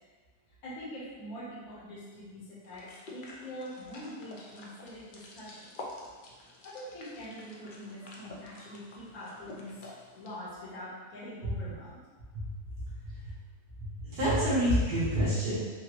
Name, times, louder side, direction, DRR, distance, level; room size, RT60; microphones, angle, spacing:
voice 1, 0.6-2.8 3.1-5.7 6.6-9.7 10.1-12.0, equal, 65° left, -7 dB, 1.5 m, -44 dB
sound 1, 2.6-10.3, left 2 dB, 85° left, 0.4 m, -48 dB
voice 2, 13.8-15.6, equal, 75° right, -9 dB, 1.7 m, -28 dB
6.0 x 2.5 x 2.9 m, 1.4 s
omnidirectional pair, 1.7 m